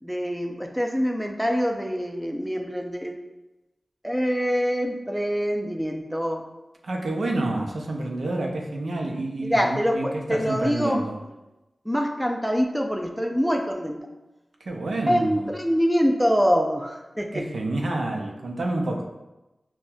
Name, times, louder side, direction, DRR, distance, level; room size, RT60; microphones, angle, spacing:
voice 1, 0.0-3.2 4.0-6.5 9.4-11.0 11.8-14.1 15.1-17.5, equal, ahead, 2 dB, 0.4 m, -25 dB
voice 2, 6.8-11.1 14.6-15.5 17.3-19.0, right 2 dB, 80° right, 1 dB, 0.5 m, -28 dB
5.7 x 2.1 x 2.2 m, 1.0 s
cardioid pair, 45°, 0 cm